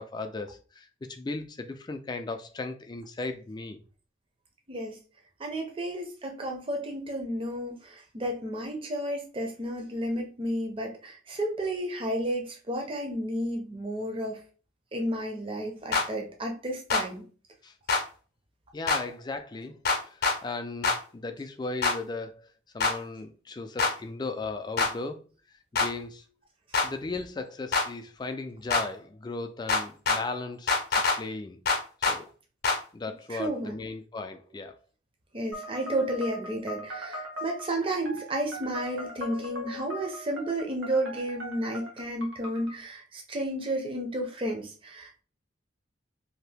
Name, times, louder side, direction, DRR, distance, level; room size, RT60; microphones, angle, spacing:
voice 1, 0.0-3.8 17.6-17.7 18.7-22.5 22.7-25.2 25.7-26.3 26.8-30.8 31.2-31.6 32.1-32.3 32.9-34.8, left 3 dB, 20° left, 0.3 m, -36 dB
voice 2, 4.7-5.0 5.4-14.4 14.9-17.2 33.3-33.8 35.3-45.2, right 1 dB, 25° right, 0.6 m, -32 dB
sound 1, 15.9-16.1 16.9-17.0 17.9-18.0 18.9-19.0 19.9-20.4 20.8-21.0 21.8-22.0 22.8-22.9 23.8-23.9 24.8-24.9 25.8-25.9 26.7-26.9 27.7-27.9 28.7-28.8 29.7-30.2 30.7-31.2 31.7-32.2 32.6-32.8, left 4 dB, 50° left, 0.6 m, -24 dB
sound 2, 35.5-42.7, equal, 75° right, 1.1 m, -40 dB
2.8 x 2.5 x 3.4 m
head